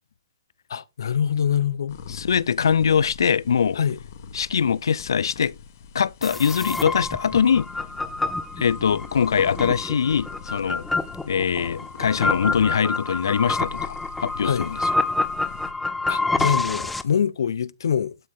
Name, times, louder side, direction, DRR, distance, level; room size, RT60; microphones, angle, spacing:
voice 1, 0.7-2.0 3.7-4.0 14.4-14.7 16.1-18.2, left 8 dB, 70° left, 0.8 m, -24 dB
sound 1, 1.9-15.7, left 7 dB, 40° left, 1.5 m, -41 dB
voice 2, 2.1-3.8 4.3-5.5 5.9-7.7 8.6-10.8 11.3-14.8, left 7 dB, 85° left, 0.5 m, -22 dB
sound 2, 6.2-17.0, left 3 dB, 5° left, 0.4 m, -28 dB
12.0 x 6.3 x 3.7 m
hypercardioid pair, 175°, 2 cm